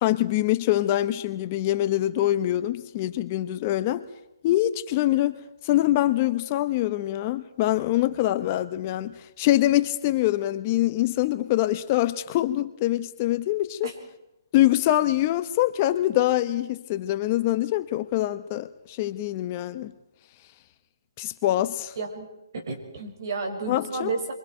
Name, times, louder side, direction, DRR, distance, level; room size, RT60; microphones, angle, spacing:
voice 1, 0.0-4.1 4.4-5.3 5.6-13.9 14.5-19.9 21.2-21.9 23.7-24.1, left 14 dB, 30° left, 11 dB, 1.0 m, -24 dB
voice 2, 22.0-22.3 22.5-24.3, right 3 dB, 55° right, 4 dB, 6.0 m, -31 dB
30.0 x 24.0 x 4.6 m, 0.88 s
hypercardioid pair, 150°, 2 cm